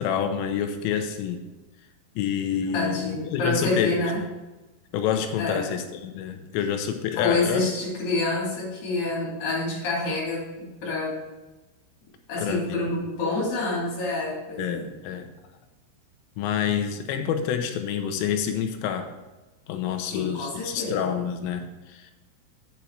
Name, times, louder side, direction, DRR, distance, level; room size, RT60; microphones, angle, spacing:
voice 1, 0.0-1.4 2.2-4.1 4.9-7.7 12.4-12.8 14.6-15.3 16.4-19.1 19.7-22.1, left 8 dB, 85° left, 6 dB, 3.4 m, -28 dB
voice 2, 2.7-4.2 5.4-5.7 7.2-11.2 12.3-14.9 20.1-21.0, left 2 dB, 50° left, -4 dB, 4.0 m, -27 dB
8.5 x 8.4 x 4.6 m, 1.1 s
omnidirectional pair, 5.9 m